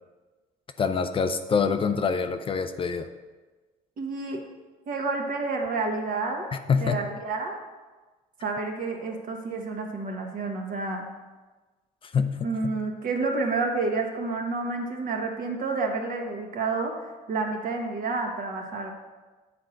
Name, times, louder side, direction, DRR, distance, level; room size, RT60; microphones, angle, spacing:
voice 1, 0.8-3.1 6.7-7.0 12.0-12.4 12.6-12.7, left 5 dB, 30° left, 8 dB, 0.5 m, -25 dB
voice 2, 4.0-4.4 4.9-6.5 6.8-7.6 8.4-11.1 12.4-18.9, right 3 dB, 55° right, 2 dB, 1.5 m, -29 dB
8.4 x 4.5 x 6.4 m, 1.3 s
cardioid pair, 110°, 17 cm